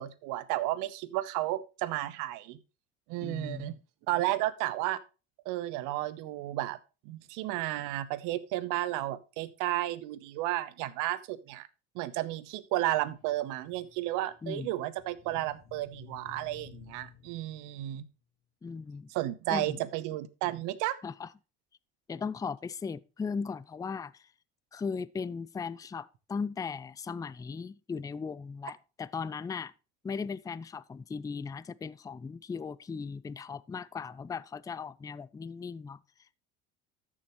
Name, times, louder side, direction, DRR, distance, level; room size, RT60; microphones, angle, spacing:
voice 1, 0.0-2.6 3.1-3.7 4.1-5.0 5.4-6.8 7.0-11.7 11.9-18.0 19.1-21.0, right 15 dB, 70° right, 1.0 m, -33 dB
voice 2, 3.2-3.7 14.4-14.7 18.6-19.1 19.5-19.8 21.0-21.3 22.1-24.3 24.7-29.7 30.0-36.0, left 5 dB, 10° left, 0.4 m, -37 dB
sound 1, 12.8-18.0, left 8 dB, 55° left, 2.0 m, -55 dB
13.0 x 7.2 x 3.1 m
hypercardioid pair, 70°, 32 cm